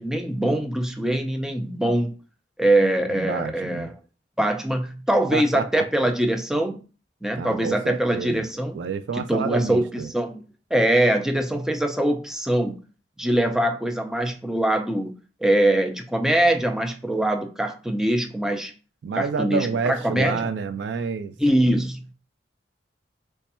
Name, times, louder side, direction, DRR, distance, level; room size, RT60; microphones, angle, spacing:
voice 1, 0.0-2.1 2.6-3.9 4.4-6.8 7.2-8.8 9.2-10.4 10.7-12.8 13.2-15.1 15.4-18.7 19.2-20.5 21.4-22.1, right 1 dB, 5° right, 0.3 m, -23 dB
voice 2, 3.1-3.9 5.3-5.8 7.4-8.4 8.7-10.1 19.0-21.4, right 5 dB, 80° right, 0.3 m, -29 dB
3.3 x 2.1 x 4.2 m
head